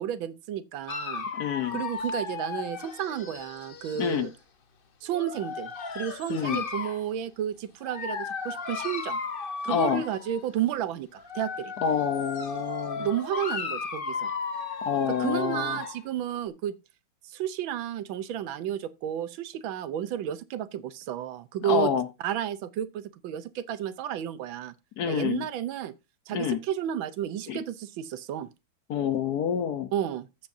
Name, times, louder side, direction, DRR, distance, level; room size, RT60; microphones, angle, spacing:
voice 1, 0.0-1.3 1.7-4.3 5.0-9.2 9.6-11.7 13.0-14.3 15.1-16.7 17.2-21.9 22.2-24.7 25.0-25.9 26.3-28.5 29.9-30.3, right 10 dB, 80° right, 1.5 m, -32 dB
Dog, 0.9-4.3 5.1-7.0 7.8-10.4 11.1-16.0, left 4 dB, 45° left, 0.7 m, -35 dB
voice 2, 1.3-1.8 4.0-4.3 6.3-6.6 9.7-10.0 11.8-13.1 14.8-15.8 21.6-22.1 25.0-25.4 26.3-26.6 27.5-27.6 28.9-29.9, left 8 dB, 60° left, 1.2 m, -27 dB
14.0 x 7.4 x 2.7 m
omnidirectional pair, 2.2 m